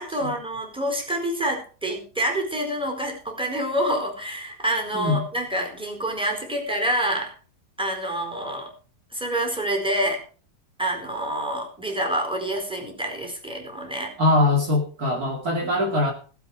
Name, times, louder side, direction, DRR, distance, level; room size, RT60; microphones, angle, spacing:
voice 1, 0.0-7.3 7.8-8.7 9.1-10.2 10.8-14.1 15.6-15.7, right 1 dB, 5° right, 2 dB, 4.3 m, -27 dB
voice 2, 4.9-5.3 14.2-16.1, left 2 dB, 50° right, 1 dB, 2.9 m, -22 dB
18.5 x 8.4 x 5.0 m, 0.39 s
omnidirectional pair, 2.0 m